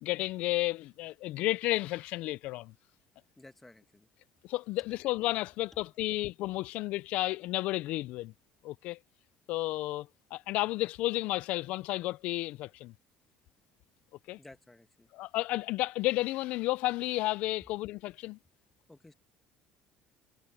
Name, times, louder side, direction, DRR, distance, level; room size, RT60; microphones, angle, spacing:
voice 1, 0.0-2.7 4.4-8.3 8.6-9.0 9.5-12.9 14.3-14.4 15.1-18.4, left 18 dB, 70° left, 0.4 m, -32 dB
voice 2, 3.4-4.1 14.4-15.1 18.9-19.1, left 2 dB, 10° left, 1.4 m, -54 dB
cardioid pair, 125°, 2 cm